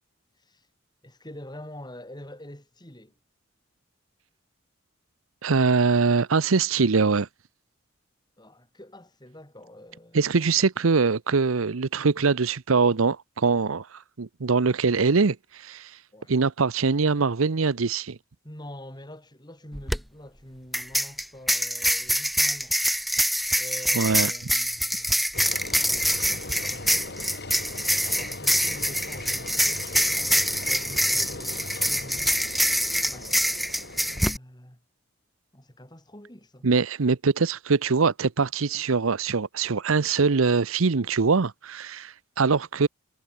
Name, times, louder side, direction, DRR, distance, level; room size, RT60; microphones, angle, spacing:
voice 1, 0.4-0.7 1.0-3.1 8.4-10.5 16.1-16.3 18.4-23.0 23.6-25.3 25.6-27.3 28.0-32.3 33.1-33.5 34.1-34.8 35.5-36.7, left 1 dB, 20° left, 5.9 m, -46 dB
voice 2, 5.4-7.3 10.1-15.9 16.3-18.2 23.9-24.3 36.6-42.9, right 4 dB, 80° right, 0.8 m, -23 dB
sound 1, 19.7-20.0 20.7-34.4, equal, ahead, 0.3 m, -25 dB
Engine, 25.3-34.3, left 2 dB, 50° left, 6.6 m, -39 dB
head